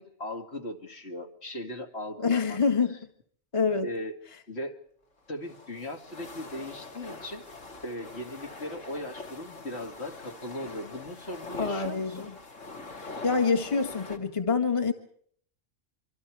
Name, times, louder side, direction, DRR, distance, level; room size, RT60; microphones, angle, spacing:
voice 1, 0.0-2.6 3.8-4.1 4.5-4.8 5.3-7.4 7.8-12.3, left 1 dB, 55° left, 4 dB, 2.7 m, -38 dB
voice 2, 2.2-3.0 3.5-3.9 11.6-12.3 13.0-14.9, left 5 dB, 25° left, 3 dB, 1.7 m, -26 dB
sound 1, 5.2-14.2, left 3 dB, 75° left, 2.5 m, -43 dB
26.0 x 25.0 x 4.8 m, 0.62 s
omnidirectional pair, 1.3 m